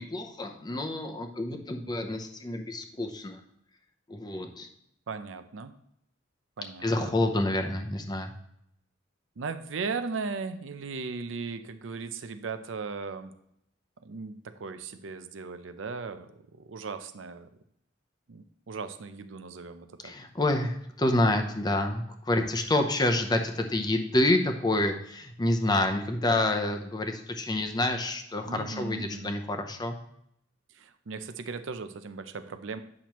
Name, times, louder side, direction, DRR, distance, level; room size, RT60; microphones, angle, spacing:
voice 1, 0.0-3.4 4.1-4.7 6.8-8.3 20.0-30.0, left 1 dB, 20° left, 5 dB, 0.7 m, -28 dB
voice 2, 5.1-5.7 6.6-7.1 9.4-13.3 14.0-17.5 18.3-20.1 28.5-29.3 30.7-32.8, right 4 dB, 90° right, 10 dB, 0.5 m, -37 dB
8.6 x 5.9 x 3.0 m, 0.76 s
head